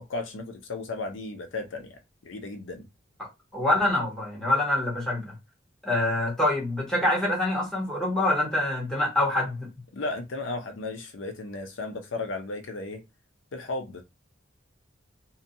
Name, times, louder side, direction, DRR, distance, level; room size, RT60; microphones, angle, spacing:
voice 1, 0.0-2.9 9.9-13.0 13.5-14.0, left 2 dB, 90° left, 0.6 m, -35 dB
voice 2, 3.2-5.3 5.8-9.7, left 1 dB, 5° left, 0.9 m, -26 dB
2.7 x 2.2 x 2.6 m
head